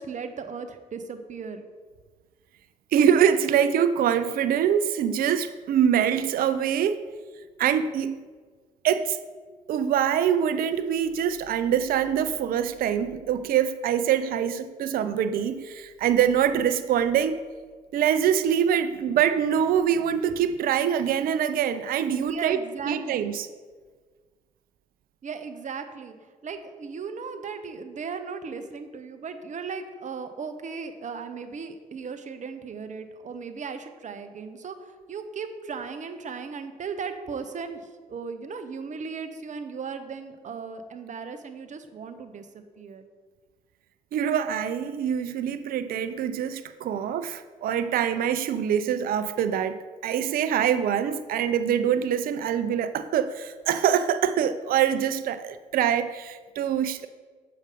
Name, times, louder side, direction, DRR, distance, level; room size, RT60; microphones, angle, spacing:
voice 1, 0.0-1.6 7.0-7.1 22.2-23.4 25.2-43.1, right 5 dB, 50° right, 9 dB, 0.8 m, -37 dB
voice 2, 2.9-7.0 7.6-8.2 8.8-9.2 9.7-17.4 17.9-23.5 44.1-49.8 50.0-57.1, right 9 dB, 65° right, 11 dB, 0.4 m, -24 dB
6.7 x 5.0 x 5.1 m, 1.5 s
hypercardioid pair, 45°, 16 cm